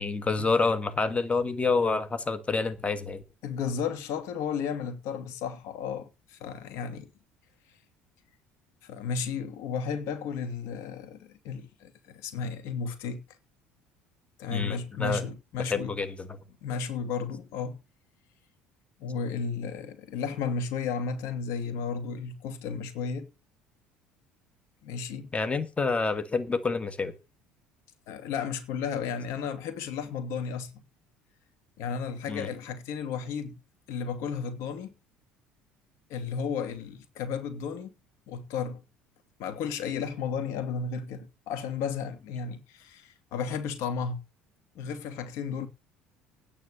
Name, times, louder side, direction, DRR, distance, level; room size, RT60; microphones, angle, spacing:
voice 1, 0.0-3.2 14.5-15.2 15.7-16.3 25.3-27.1 32.3-32.5, left 4 dB, 25° left, 1.9 m, -28 dB
voice 2, 3.4-7.1 8.8-13.2 14.4-15.9 16.6-17.8 19.0-23.3 24.8-25.3 28.1-30.8 31.8-33.6 33.9-34.9 36.1-37.9 38.3-38.8 39.4-44.2 44.8-45.7, left 6 dB, 65° left, 2.4 m, -33 dB
9.8 x 8.7 x 6.8 m
hypercardioid pair, 65°, 5 cm